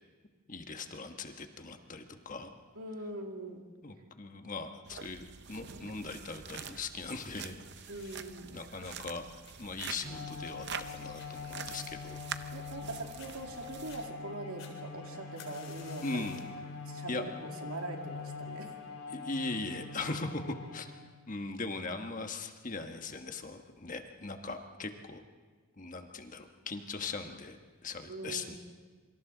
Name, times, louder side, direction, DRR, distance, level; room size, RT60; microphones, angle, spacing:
voice 1, 0.5-2.5 3.8-8.0 8.5-9.3 9.6-12.2 16.0-16.4 17.1-17.2 19.1-20.9 21.3-25.2 25.8-28.6, left 3 dB, 35° left, 5 dB, 1.3 m, -40 dB
voice 2, 2.7-3.6 7.9-8.5 12.5-16.3 16.8-18.7 28.1-28.6, right 2 dB, 75° right, 2 dB, 2.4 m, -42 dB
sound 1, 4.8-14.1, right 7 dB, 50° right, 0.6 m, -46 dB
sound 2, 7.8-8.4 8.8-12.9 13.2-13.3 13.7-14.0 14.6-16.6 17.0-17.4 18.1-18.2, left 6 dB, 60° left, 4.1 m, -55 dB
Bowed string instrument, 10.0-21.2, left 5 dB, 85° left, 3.7 m, -44 dB
27.0 x 25.0 x 3.9 m, 1.5 s
head